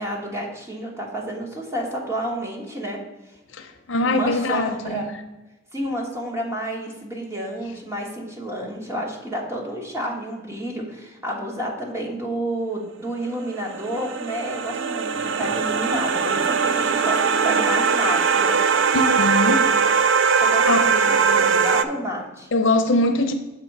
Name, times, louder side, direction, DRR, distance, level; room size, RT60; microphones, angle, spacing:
voice 1, 0.0-3.0 4.0-5.1 5.7-18.6 20.4-22.5, right 1 dB, 15° right, -1 dB, 1.4 m, -30 dB
voice 2, 3.5-5.1 18.9-19.7 20.2-20.4 20.7-21.0 22.5-23.3, left 2 dB, 75° left, 5 dB, 0.8 m, -22 dB
sound 1, 13.4-21.8, right 5 dB, 70° right, 0.4 m, -20 dB
6.9 x 3.8 x 6.0 m, 1.1 s
head